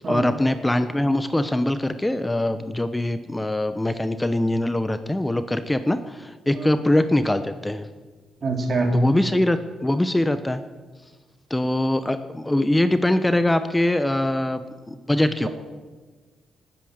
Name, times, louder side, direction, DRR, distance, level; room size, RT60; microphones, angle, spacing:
voice 1, 0.0-7.9 8.9-10.6 11.5-15.5, left 1 dB, 15° left, 11 dB, 0.9 m, -23 dB
voice 2, 8.4-9.0 15.4-15.5, right 3 dB, 50° right, 2 dB, 3.6 m, -24 dB
19.0 x 9.3 x 6.6 m, 1.3 s
supercardioid pair, 55°, 0 cm